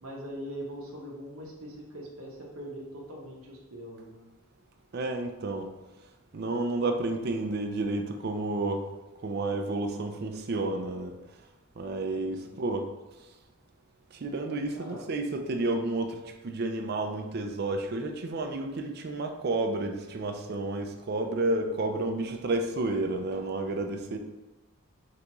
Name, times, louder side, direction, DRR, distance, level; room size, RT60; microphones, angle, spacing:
voice 1, 0.0-4.2 12.3-12.7 14.7-15.0, equal, 80° right, -2 dB, 0.8 m, -42 dB
voice 2, 4.9-5.7 6.3-8.8 9.2-11.1 11.8-12.9 14.1-24.2, right 2 dB, 50° right, 5 dB, 0.4 m, -31 dB
3.9 x 3.4 x 3.0 m, 1.1 s
head